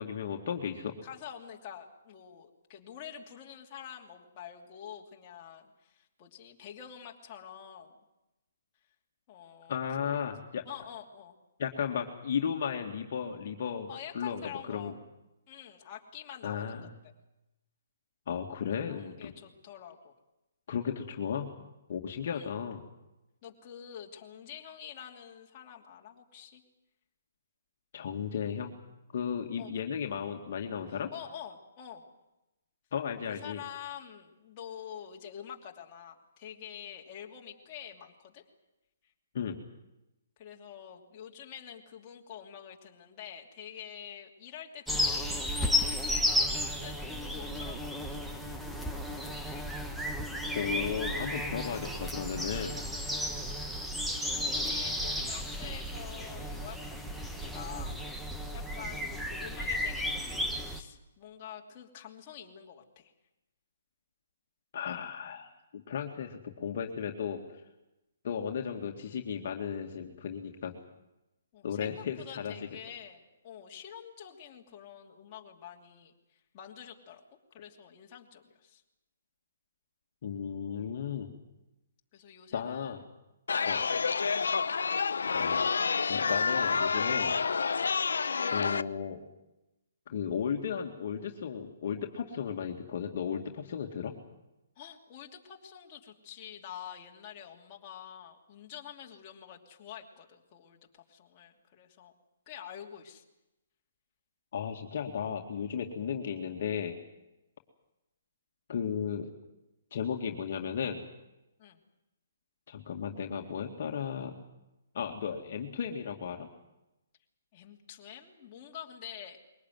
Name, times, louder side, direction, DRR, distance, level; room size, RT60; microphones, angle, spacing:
voice 1, 0.0-0.9 9.7-10.6 11.6-14.9 16.4-16.9 18.3-19.3 20.7-21.5 21.9-22.8 27.9-28.7 29.1-31.1 32.9-33.6 39.3-39.6 50.5-52.8 64.7-67.6 68.2-70.7 71.6-72.6 80.2-81.3 82.5-83.0 83.6-83.8 85.3-85.7 86.1-87.4 88.5-89.2 90.1-94.1 104.5-107.0 108.7-109.3 109.9-111.0 112.7-114.4 114.9-116.5, left 7 dB, 55° left, 2 dB, 2.2 m, -35 dB
voice 2, 1.0-7.9 9.3-10.3 10.6-11.3 13.9-14.9 15.5-17.1 18.8-20.1 22.3-22.5 23.4-26.6 29.6-29.7 30.9-32.0 33.3-38.4 39.0-39.1 40.4-48.5 48.9-49.3 53.4-53.7 54.0-58.3 58.5-63.1 71.5-78.8 82.1-83.0 83.5-84.0 84.4-84.8 94.8-102.1 102.5-103.2 111.6-111.8 117.5-119.4, left 9 dB, 30° left, 0 dB, 2.9 m, -47 dB
sound 1, 44.9-60.8, left 1 dB, ahead, 1.4 m, -33 dB
Chatter, 83.5-88.8, left 5 dB, 85° left, 0.8 m, -28 dB
22.0 x 18.5 x 9.4 m, 0.95 s
hypercardioid pair, 155°, 0 cm